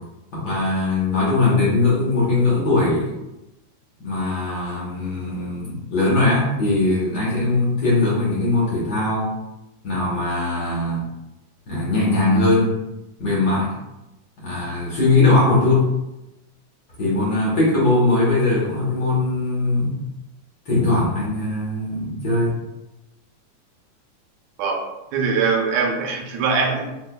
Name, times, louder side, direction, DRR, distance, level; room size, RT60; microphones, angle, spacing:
voice 1, 0.3-3.1 4.0-9.3 9.8-11.0 11.7-12.7 13.2-13.8 14.4-15.9 17.0-20.0 20.7-22.5, left 2 dB, 65° left, -7 dB, 1.0 m, -20 dB
voice 2, 25.1-26.8, right 5 dB, 80° right, 1 dB, 1.7 m, -21 dB
5.3 x 2.2 x 2.2 m, 0.94 s
omnidirectional pair, 3.4 m